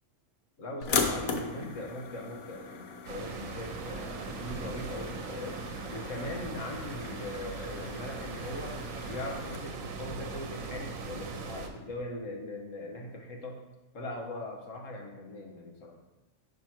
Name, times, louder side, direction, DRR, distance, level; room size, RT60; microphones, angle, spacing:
voice 1, 0.6-5.6 5.9-8.8 9.1-13.6 13.9-16.0, left 1 dB, 70° left, 1 dB, 1.5 m, -40 dB
sound 1, 0.8-9.6, left 5 dB, 90° left, 1.3 m, -38 dB
sound 2, 3.1-11.7, right 4 dB, 80° right, 1.1 m, -40 dB
6.0 x 5.9 x 4.5 m, 1.1 s
omnidirectional pair, 1.4 m